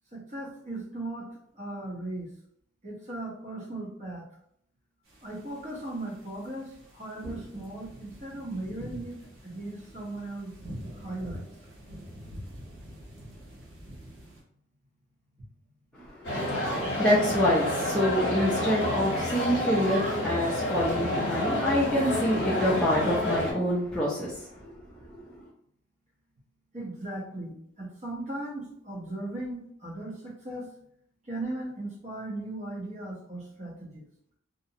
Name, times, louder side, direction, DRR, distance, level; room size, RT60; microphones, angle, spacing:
voice 1, 0.1-2.3 2.8-4.3 5.2-10.5 10.9-11.5 26.7-30.7 31.2-34.1, right 2 dB, 35° right, -4 dB, 0.7 m, -37 dB
sound 1, 5.1-14.4, equal, 80° right, 0.9 m, -45 dB
voice 2, 16.0-24.4 25.0-25.2, equal, 5° left, -9 dB, 0.4 m, -27 dB
sound 2, 16.2-23.5, left 1 dB, 55° left, 0.8 m, -29 dB
2.5 x 2.0 x 2.7 m, 0.69 s
head